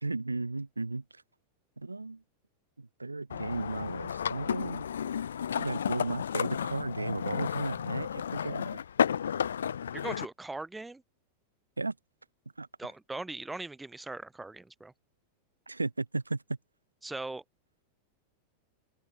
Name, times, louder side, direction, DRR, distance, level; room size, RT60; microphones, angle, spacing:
voice 1, 0.0-1.0 1.8-2.2 2.8-4.9 5.6-8.8 11.8-11.9 12.6-12.7 15.7-16.4, right 3 dB, 80° right, 0.4 m, -35 dB
sound 1, 3.3-10.3, left 8 dB, 65° left, 1.5 m, -32 dB
voice 2, 9.9-11.0 12.8-14.9 17.0-17.4, right 2 dB, 10° right, 2.0 m, -40 dB
open air
figure-of-eight pair, 90°, 0 cm